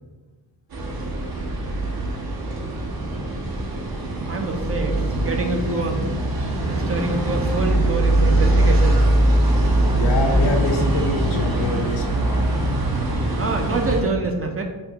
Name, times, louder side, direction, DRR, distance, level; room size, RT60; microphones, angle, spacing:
sound 1, 0.7-14.0, right 1 dB, 50° right, 0.8 m, -21 dB
voice 1, 4.3-6.0 6.7-9.2 13.4-14.6, right 3 dB, 30° right, 3 dB, 0.5 m, -26 dB
voice 2, 9.5-12.5, left 1 dB, 65° left, 1 dB, 0.8 m, -27 dB
4.3 x 2.2 x 2.8 m, 1.3 s
supercardioid pair, 45°, 46 cm